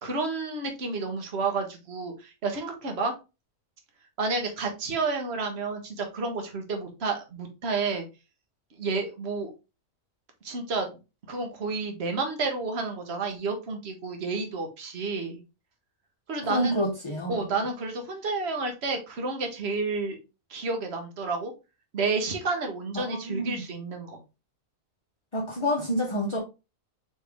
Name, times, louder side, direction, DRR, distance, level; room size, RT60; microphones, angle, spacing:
voice 1, 0.0-3.1 4.2-8.1 8.8-9.5 10.4-11.0 11.3-15.4 16.3-16.7 17.3-20.2 20.5-21.5 21.9-24.2, right 3 dB, 50° right, 1.3 m, -30 dB
voice 2, 16.5-17.5 22.9-23.6 25.3-26.4, equal, 25° left, 0.8 m, -28 dB
4.4 x 3.4 x 3.4 m
omnidirectional pair, 1.4 m